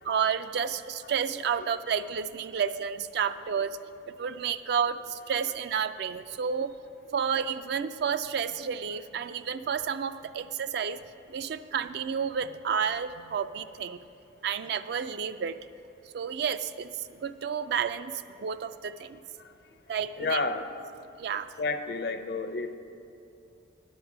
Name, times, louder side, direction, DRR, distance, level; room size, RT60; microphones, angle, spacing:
voice 1, 0.0-3.8 4.2-6.7 7.1-11.0 11.3-14.0 14.4-15.6 16.1-19.2 19.9-20.4 21.2-21.5, right 7 dB, 55° right, 12 dB, 0.3 m, -31 dB
voice 2, 20.2-20.7 21.3-22.8, left 3 dB, 55° left, 9 dB, 0.6 m, -31 dB
9.5 x 7.9 x 5.9 m, 2.7 s
head